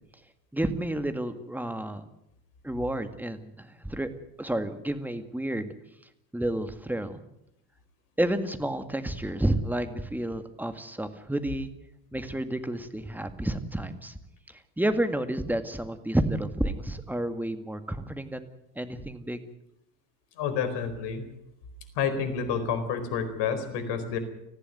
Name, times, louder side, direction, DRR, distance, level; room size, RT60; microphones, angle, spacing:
voice 1, 0.5-2.0 2.6-4.1 4.4-5.7 6.3-7.2 8.2-11.7 12.1-14.1 14.8-18.5 18.8-19.4, right 1 dB, 5° right, 8 dB, 2.0 m, -30 dB
voice 2, 20.4-21.2 21.9-24.2, left 6 dB, 55° left, 10 dB, 4.6 m, -29 dB
19.5 x 15.0 x 9.4 m, 0.83 s
hypercardioid pair, 80°, 49 cm